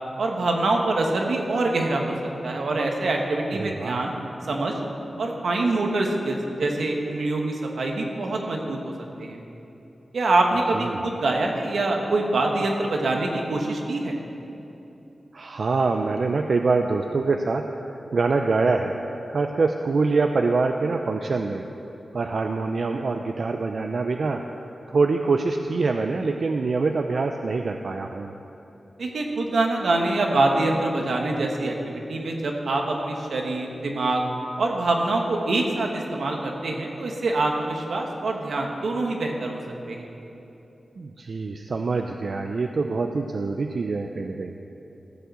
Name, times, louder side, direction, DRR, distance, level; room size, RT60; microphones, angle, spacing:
voice 1, 0.2-2.1 2.4-4.2 4.5-4.7 5.2-8.9 9.2-9.4 10.1-14.2 29.0-34.2 34.6-39.6 39.9-40.1, right 2 dB, 90° right, 1 dB, 1.4 m, -25 dB
voice 2, 3.5-4.0 10.7-11.0 15.3-21.6 22.1-28.3 41.0-44.6, right 3 dB, 65° right, 5 dB, 0.5 m, -25 dB
15.0 x 5.7 x 7.6 m, 3.0 s
wide cardioid pair, 95°, 0 cm